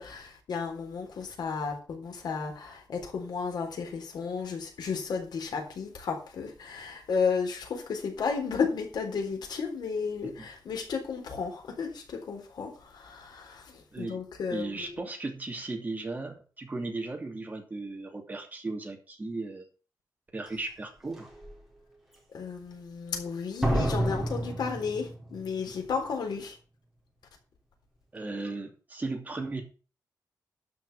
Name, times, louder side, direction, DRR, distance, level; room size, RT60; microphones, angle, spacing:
voice 1, 0.0-15.0 22.3-26.6, left 5 dB, 80° left, 3.8 m, -33 dB
voice 2, 14.5-19.6 20.3-21.3 28.1-29.6, right 3 dB, 25° right, 2.8 m, -36 dB
Slam, 20.5-20.6 21.2-21.5 23.6-25.5 25.8-25.9, right 1 dB, 5° right, 3.6 m, -29 dB
12.5 x 5.9 x 6.9 m
wide cardioid pair, 160°, 7 cm